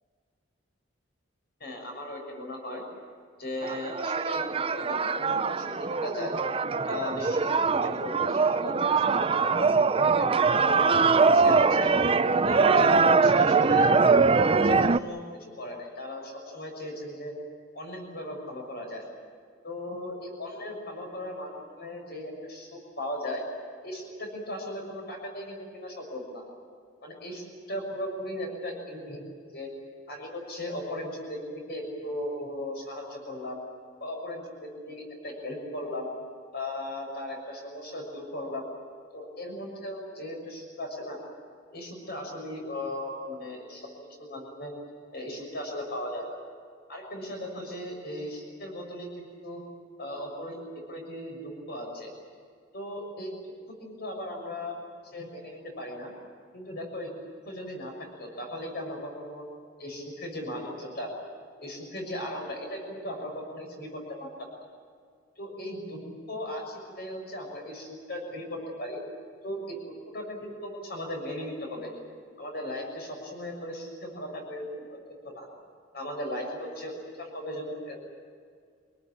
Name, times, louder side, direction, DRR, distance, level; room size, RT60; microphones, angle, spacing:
voice 1, 1.6-2.8 3.4-6.3 6.9-9.8 10.2-11.0 11.3-12.0 12.4-17.3 17.7-19.0 19.6-23.4 23.8-26.4 27.0-29.2 29.5-29.7 30.1-33.6 34.0-36.1 36.5-38.6 39.1-41.2 41.7-43.9 44.2-44.7 45.1-46.4 46.9-49.6 50.0-50.6 50.9-52.1 52.7-53.3 53.8-56.1 56.5-57.1 57.4-59.4 59.8-61.1 61.6-64.5 65.4-66.0 66.3-69.0 69.4-71.9 72.4-75.5 75.9-78.0, left 1 dB, 55° left, 1 dB, 6.7 m, -37 dB
sound 1, 3.6-15.0, right 4 dB, 30° right, 0.5 m, -22 dB
26.5 x 19.0 x 8.7 m, 2.1 s
head